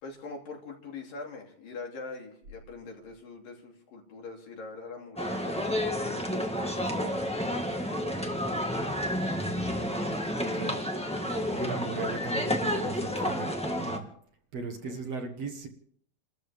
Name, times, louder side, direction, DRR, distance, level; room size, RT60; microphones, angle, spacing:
voice 1, 0.0-5.7 6.0-8.5 14.8-15.0, left 3 dB, 85° left, 0 dB, 4.9 m, -44 dB
sound 1, 5.2-14.0, equal, 10° left, 0.3 m, -30 dB
voice 2, 9.4-9.9 10.5-11.0 11.5-14.1 14.5-15.7, right 4 dB, 55° right, 4 dB, 2.2 m, -38 dB
29.5 x 13.5 x 3.6 m, 0.62 s
omnidirectional pair, 3.9 m